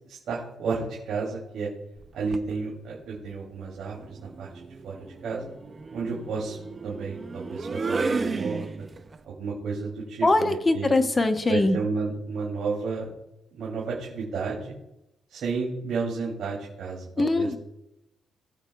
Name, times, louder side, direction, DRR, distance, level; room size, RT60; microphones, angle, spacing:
voice 1, 0.1-1.7 2.1-4.5 4.8-5.0 5.2-5.5 5.9-6.6 6.8-8.9 9.2-10.9 11.5-13.1 13.5-14.7 15.3-17.5, right 4 dB, 65° right, -4 dB, 2.8 m, -32 dB
sound 1, 2.0-2.5 3.9-9.2, right 4 dB, 30° right, 0.6 m, -33 dB
voice 2, 10.2-11.8 17.2-17.6, left 2 dB, 25° left, 7 dB, 1.0 m, -22 dB
18.5 x 7.2 x 2.3 m, 0.87 s
cardioid pair, 90°, 0 cm